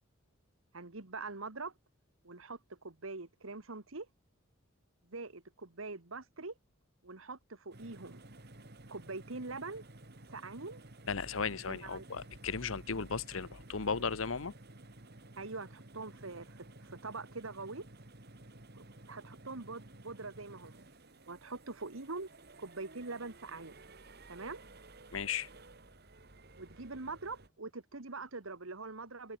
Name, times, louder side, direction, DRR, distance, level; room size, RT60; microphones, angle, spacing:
voice 1, 0.7-1.7 2.2-4.1 5.1-6.5 7.0-8.2 8.9-9.8 10.3-10.8 11.6-12.1 15.4-17.9 18.7-20.9 21.3-22.3 22.6-23.8 24.3-24.6 26.6-29.4, right 3 dB, 85° right, 1.8 m, -44 dB
sound 1, 7.7-27.5, right 2 dB, 50° right, 2.3 m, -54 dB
voice 2, 11.1-14.5 25.1-25.5, left 5 dB, 80° left, 1.1 m, -36 dB
head